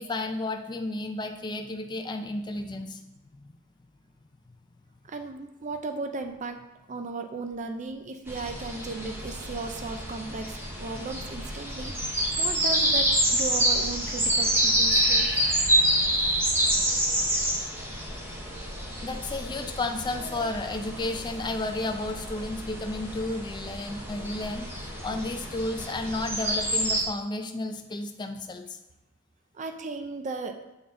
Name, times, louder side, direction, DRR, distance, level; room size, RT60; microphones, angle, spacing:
voice 1, 0.0-3.0 3.4-3.6 19.0-28.8, left 2 dB, 20° left, 5 dB, 0.4 m, -32 dB
voice 2, 5.1-6.6 6.9-15.7 17.0-17.1 29.5-30.5, right 3 dB, 35° right, 6 dB, 0.5 m, -36 dB
sound 1, 8.3-27.0, right 1 dB, 10° right, 1.0 m, -27 dB
6.9 x 4.0 x 3.7 m, 1.0 s
head